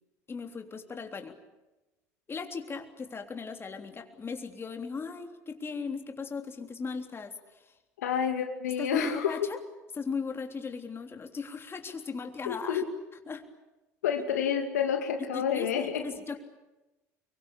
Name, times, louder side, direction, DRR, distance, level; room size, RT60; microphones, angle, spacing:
voice 1, 0.3-1.3 2.3-7.7 8.8-9.6 9.9-12.8 13.3-13.4 15.2-16.4, left 5 dB, 30° left, 5 dB, 3.5 m, -37 dB
voice 2, 8.0-9.4 12.5-12.9 14.0-16.0, left 8 dB, 80° left, 5 dB, 2.5 m, -29 dB
25.5 x 23.0 x 8.7 m, 1.0 s
hypercardioid pair, 70°, 8 cm